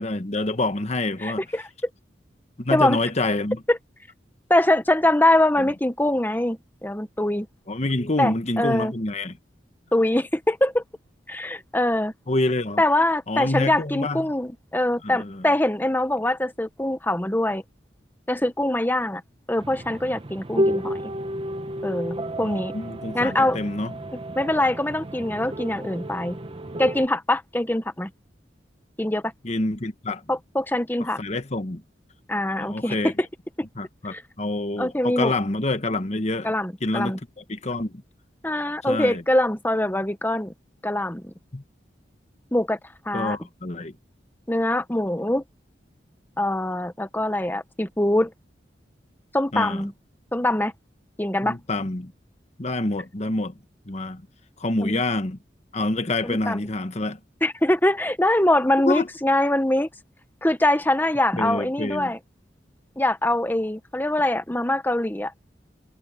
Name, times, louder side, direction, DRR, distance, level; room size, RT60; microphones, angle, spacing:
voice 1, 0.0-1.4 2.6-3.6 5.6-5.7 7.7-9.4 12.3-12.8 13.3-14.3 15.0-15.4 22.4-23.9 29.4-30.2 31.2-31.8 32.6-33.1 33.7-36.5 36.8-37.2 37.5-38.0 38.8-39.2 41.5-41.6 43.1-43.9 49.5-49.9 51.4-52.1 52.6-53.5 53.9-54.2 54.6-55.4 55.7-57.2 58.8-59.1 61.4-62.1, left 2 dB, 40° left, 1.3 m, -27 dB
voice 2, 1.2-1.7 2.7-3.0 3.7-3.8 4.5-7.5 8.2-8.9 9.9-10.8 11.3-12.1 12.8-17.6 18.3-19.2 19.5-21.1 21.8-22.7 23.1-23.6 24.1-26.4 26.8-28.1 29.0-29.3 30.3-31.2 32.3-33.1 34.1-34.2 34.8-35.3 36.4-37.2 38.4-40.5 40.8-41.3 42.5-42.8 43.0-43.4 44.5-45.4 46.4-48.3 49.3-49.9 50.3-50.7 51.2-51.6 54.8-55.0 56.2-56.7 57.4-59.9 60.4-62.2 63.0-65.3, left 1 dB, 10° left, 1.2 m, -23 dB
sound 1, 19.6-27.1, equal, 30° right, 1.1 m, -31 dB
head